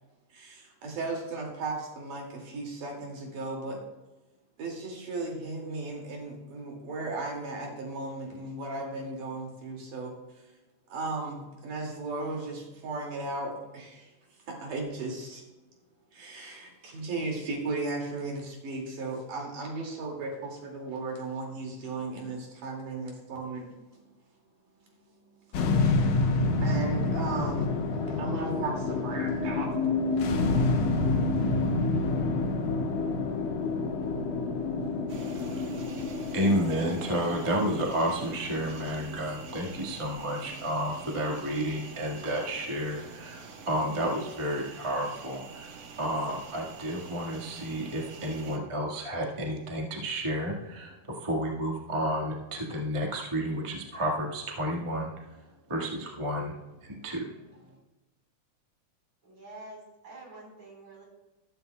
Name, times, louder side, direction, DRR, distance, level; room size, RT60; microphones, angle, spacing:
voice 1, 0.3-3.8 4.6-10.1 10.9-14.1 14.5-15.4 16.1-23.7 26.6-29.7, right 3 dB, 85° right, -1 dB, 4.0 m, -36 dB
sound 1, 25.5-41.9, left 3 dB, 85° left, 2.5 m, -29 dB
sound 2, 35.1-48.6, right 5 dB, 65° right, 2.1 m, -46 dB
voice 2, 36.3-43.4 43.7-45.7 46.0-55.1 55.7-56.5 56.8-57.3, equal, 20° right, -1 dB, 0.9 m, -31 dB
voice 3, 59.2-61.0, right 2 dB, 35° right, -2 dB, 5.0 m, -47 dB
14.0 x 14.0 x 2.3 m, 1.1 s
omnidirectional pair, 3.6 m